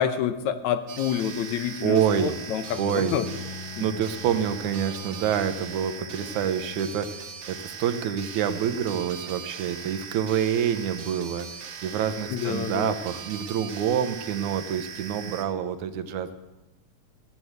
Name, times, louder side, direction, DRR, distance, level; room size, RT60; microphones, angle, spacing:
voice 1, 0.0-3.3 3.8-3.9 12.3-12.9, left 9 dB, 80° left, 10 dB, 2.2 m, -28 dB
sound 1, 0.9-15.4, right 6 dB, 65° right, 2.4 m, -40 dB
voice 2, 1.8-2.4 2.8-3.1 3.8-16.4, right 8 dB, 80° right, 10 dB, 2.4 m, -27 dB
Bowed string instrument, 2.6-7.6, left 5 dB, 45° left, 2.4 m, -42 dB
16.5 x 8.7 x 8.0 m, 1.0 s
omnidirectional pair, 3.4 m